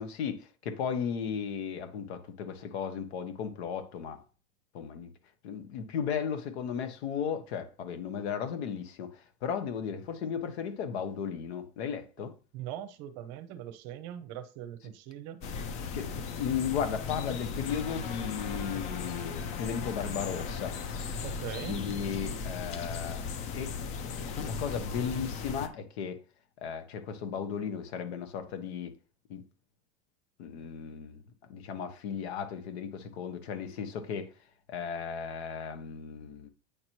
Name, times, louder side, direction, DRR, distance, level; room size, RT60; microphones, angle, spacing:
voice 1, 0.0-4.2 4.7-5.1 5.4-12.3 15.9-20.8 21.7-23.2 23.5-23.8 24.2-26.2 26.6-28.9 29.3-29.4 30.4-31.2 31.5-34.3 34.7-36.5, left 7 dB, 85° left, 1.2 m, -35 dB
voice 2, 12.5-15.4 21.2-21.8, right 11 dB, 45° right, 0.7 m, -41 dB
sound 1, 15.4-25.7, left 5 dB, 25° left, 0.4 m, -37 dB
8.5 x 2.9 x 4.5 m
supercardioid pair, 170°, 31 cm